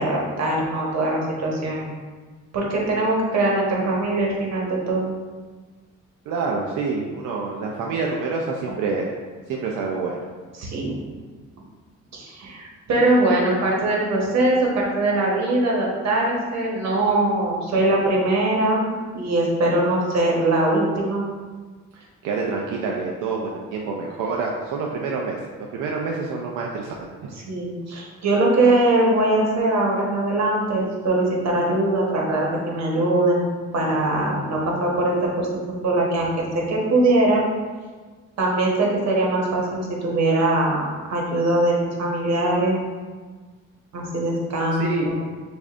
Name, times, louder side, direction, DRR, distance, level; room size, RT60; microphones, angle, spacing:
voice 1, 0.0-1.9 2.5-5.1 10.5-11.0 12.1-21.2 27.5-33.4 33.7-35.5 35.8-37.4 38.4-42.8 43.9-45.2, right 2 dB, 60° right, -3 dB, 1.2 m, -21 dB
voice 2, 6.3-9.1 9.5-10.2 21.9-25.4 25.7-27.3 44.8-45.1, right 4 dB, 90° right, -1 dB, 0.5 m, -27 dB
6.5 x 2.6 x 2.5 m, 1.4 s
cardioid pair, 90°, 30 cm